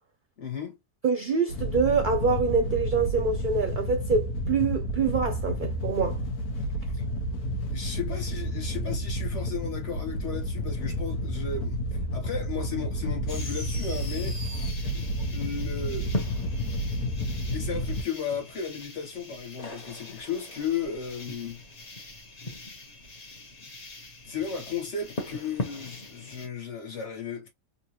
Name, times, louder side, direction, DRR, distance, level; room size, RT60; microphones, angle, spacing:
voice 1, 0.4-0.8 6.9-7.0 7.7-14.4 14.9-15.0 15.3-16.2 17.5-21.6 23.6-23.7 24.2-27.5, left 6 dB, 55° left, 1.7 m, -35 dB
voice 2, 1.0-6.2, right 5 dB, 45° right, 0.6 m, -25 dB
Wind / Boat Water vehicle, 1.5-18.0, equal, 85° left, 1.4 m, -31 dB
sound 1, 13.3-26.5, left 2 dB, 30° left, 0.9 m, -40 dB
3.8 x 2.8 x 2.9 m
omnidirectional pair, 1.5 m